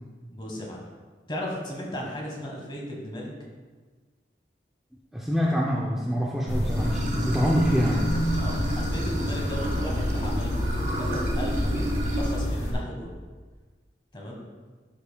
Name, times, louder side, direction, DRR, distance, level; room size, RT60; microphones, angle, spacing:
voice 1, 0.3-0.8 1.3-3.3 8.4-10.6 10.9-11.8 12.1-13.1 14.1-14.4, equal, 25° left, -2 dB, 1.3 m, -35 dB
voice 2, 5.1-8.1, equal, ahead, -4 dB, 0.5 m, -25 dB
sound 1, 6.5-12.7, equal, 70° left, 1.4 m, -28 dB
Water / Sink (filling or washing), 6.7-12.4, equal, 40° right, 1.1 m, -34 dB
11.0 x 5.3 x 2.2 m, 1.4 s
head